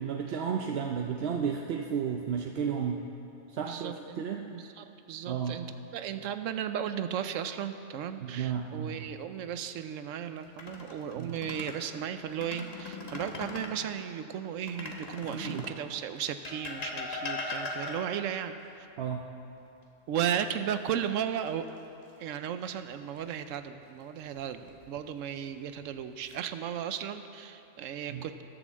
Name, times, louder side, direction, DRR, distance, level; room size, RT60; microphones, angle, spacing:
voice 1, 0.0-3.0 3.5-4.5 5.3-5.6 8.2-9.1 11.2-11.4 15.3-15.7 19.0-19.3 28.1-28.2, right 7 dB, 60° right, 2 dB, 0.8 m, -33 dB
voice 2, 3.6-4.2 4.5-18.9 20.1-21.7 22.2-28.4, right 9 dB, 85° right, 10 dB, 1.0 m, -35 dB
sound 1, 10.4-11.8 12.3-13.8 14.7-15.8 16.4-18.3 20.2-20.9 21.3-21.5 24.4-25.0 25.7-26.4, left 2 dB, 35° left, 1.0 m, -39 dB
12.5 x 7.0 x 7.2 m, 2.8 s
omnidirectional pair, 1.3 m